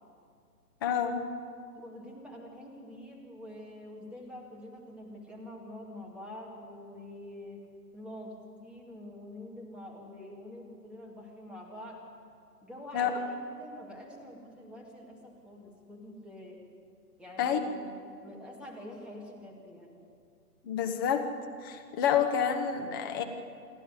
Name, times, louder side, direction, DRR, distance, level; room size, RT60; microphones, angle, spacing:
voice 1, 0.8-1.2 12.9-13.2 17.4-17.6 20.6-21.3 21.6-23.2, left 8 dB, 15° left, 5 dB, 0.9 m, -28 dB
voice 2, 1.7-7.6 7.9-12.0 12.6-16.6 17.2-17.9 18.2-20.1, left 1 dB, ahead, -2 dB, 2.2 m, -46 dB
28.0 x 11.5 x 9.7 m, 2.3 s
figure-of-eight pair, 145°, 47 cm